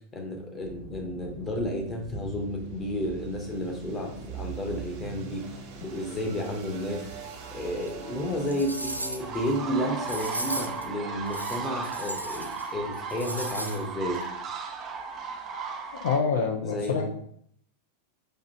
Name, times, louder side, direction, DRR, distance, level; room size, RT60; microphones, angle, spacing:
voice 1, 0.1-5.4 5.8-7.0 7.5-14.2 16.6-17.1, equal, 15° left, 1 dB, 0.9 m, -32 dB
sound 1, 0.6-13.5, right 6 dB, 45° right, 0.9 m, -43 dB
sound 2, 7.8-7.9 8.4-9.4 10.0-10.8 11.3-12.7 12.9-13.8 14.1-14.2, right 1 dB, 85° right, 0.3 m, -36 dB
sound 3, 9.2-16.2, right 5 dB, 25° right, 0.5 m, -36 dB
voice 2, 16.0-17.1, left 5 dB, 60° left, 3 dB, 0.4 m, -26 dB
5.1 x 2.9 x 2.7 m, 0.66 s
figure-of-eight pair, 90°, 0 cm